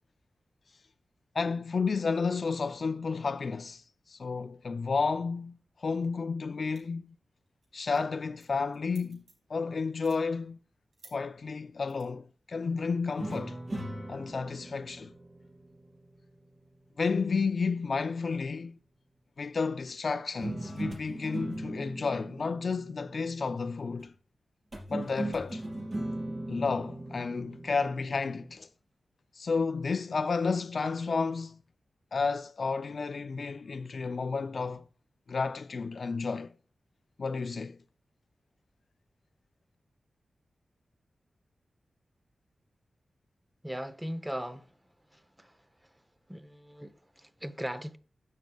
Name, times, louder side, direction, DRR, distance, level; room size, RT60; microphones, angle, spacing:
voice 1, 1.3-3.8 4.1-7.2 7.7-9.2 9.5-10.6 11.1-13.6 14.1-15.1 17.0-18.8 19.4-24.1 24.9-25.6 26.5-28.7 29.4-31.6 32.1-34.8 35.3-36.5 37.2-37.8, left 4 dB, 65° left, 0.5 m, -31 dB
sound 1, 6.8-7.1 7.5-7.7 8.0-9.5 9.9-10.2 10.9-11.2 11.9-12.0, right 2 dB, 70° right, 4.5 m, -56 dB
sound 2, 13.2-16.6 20.4-23.8 24.7-28.6, right 1 dB, 45° right, 4.3 m, -39 dB
voice 2, 43.6-44.7 45.1-45.6 46.3-48.0, equal, 10° right, 0.9 m, -39 dB
16.0 x 6.5 x 2.3 m
cardioid pair, 65°, 0 cm